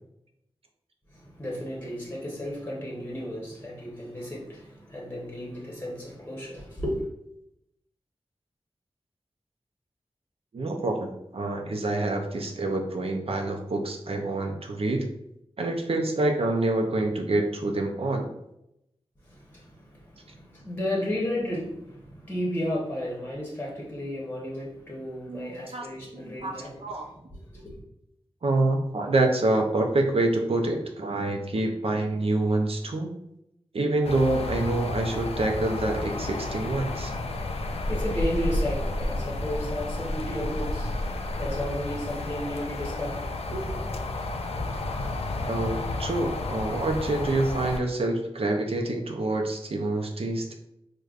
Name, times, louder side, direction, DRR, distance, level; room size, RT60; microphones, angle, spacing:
voice 1, 1.1-7.0 19.2-27.8 37.2-43.9, left 1 dB, 20° left, -3 dB, 0.9 m, -34 dB
voice 2, 10.5-15.1 15.6-18.3 25.3-25.9 26.1-27.0 28.4-33.1 33.7-37.1 45.5-50.5, right 2 dB, 65° right, 2 dB, 0.5 m, -27 dB
sound 1, 34.0-47.8, left 2 dB, 75° left, 0.4 m, -31 dB
4.8 x 2.2 x 2.4 m, 0.82 s
wide cardioid pair, 85°, 11 cm